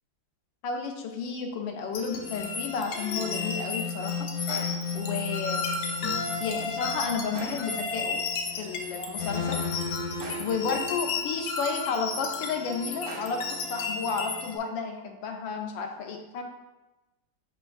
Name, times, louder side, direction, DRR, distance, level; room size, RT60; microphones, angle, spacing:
voice 1, 0.6-4.3 4.9-5.6 6.4-8.2 8.6-9.6 10.4-13.4 13.7-16.4, left 5 dB, 90° left, 3 dB, 1.3 m, -32 dB
sound 1, 1.9-14.6, left 4 dB, 75° left, 1.2 m, -32 dB
sound 2, 4.5-5.0 7.3-7.9 10.2-10.7 13.1-13.6, right 2 dB, 85° right, 1.8 m, -42 dB
7.5 x 2.5 x 2.3 m, 1.1 s
omnidirectional pair, 2.0 m